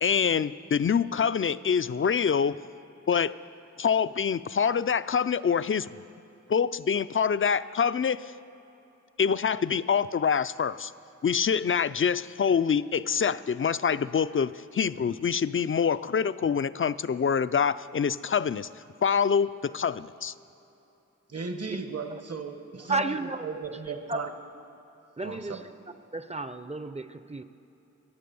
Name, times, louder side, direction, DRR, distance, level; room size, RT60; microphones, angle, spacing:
voice 1, 0.0-2.6 3.1-3.4 3.8-5.9 6.5-8.3 9.2-10.9 11.2-18.7 19.0-20.3, left 6 dB, 45° left, 16 dB, 0.4 m, -25 dB
voice 2, 21.3-23.2 23.4-24.3 25.2-25.6, right 4 dB, 55° right, 6 dB, 1.2 m, -36 dB
voice 3, 22.9-23.5 24.1-24.2 25.2-25.6 26.1-27.4, right 3 dB, 25° right, 11 dB, 0.6 m, -32 dB
23.5 x 8.5 x 6.9 m, 2.9 s
wide cardioid pair, 70°, 29 cm